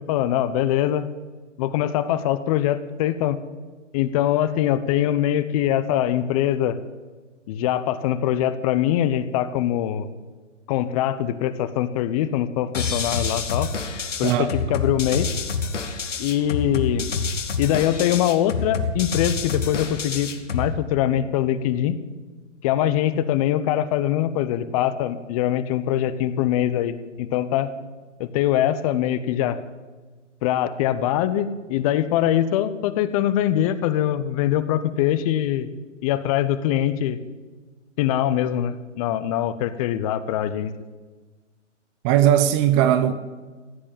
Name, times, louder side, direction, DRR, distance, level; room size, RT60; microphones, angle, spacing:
voice 1, 0.1-1.1 1.6-3.4 3.9-6.8 7.5-10.1 10.7-13.7 14.2-15.3 16.2-17.1 17.6-22.0 22.6-27.7 28.2-29.6 30.4-35.7 36.0-37.2 38.0-40.7, left 11 dB, 30° left, 0.8 m, -23 dB
sound 1, 12.7-20.7, left 4 dB, 80° left, 2.0 m, -27 dB
voice 2, 42.0-43.1, right 11 dB, 25° right, 0.7 m, -18 dB
16.0 x 8.6 x 8.8 m
figure-of-eight pair, 125°, 37 cm